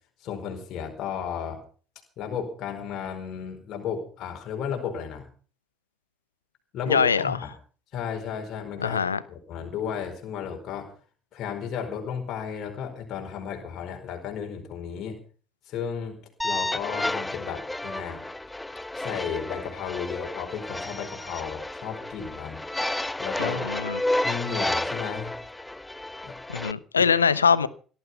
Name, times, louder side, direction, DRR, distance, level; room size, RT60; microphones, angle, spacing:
voice 1, 0.2-1.6 2.2-5.3 6.7-7.5 7.9-10.9 11.3-15.2 15.7-16.2 16.4-18.2 19.0-22.6 23.2-23.8 24.2-25.3 26.2-26.3 27.0-27.1, left 7 dB, 50° left, 3 dB, 4.6 m, -34 dB
voice 2, 6.9-7.4 8.8-9.2 23.4-24.0 26.5-27.7, left 6 dB, 80° left, 18 dB, 0.9 m, -23 dB
sound 1, 16.4-26.7, left 1 dB, 10° left, 0.9 m, -31 dB
18.0 x 12.5 x 5.6 m, 0.41 s
figure-of-eight pair, 55°, 0 cm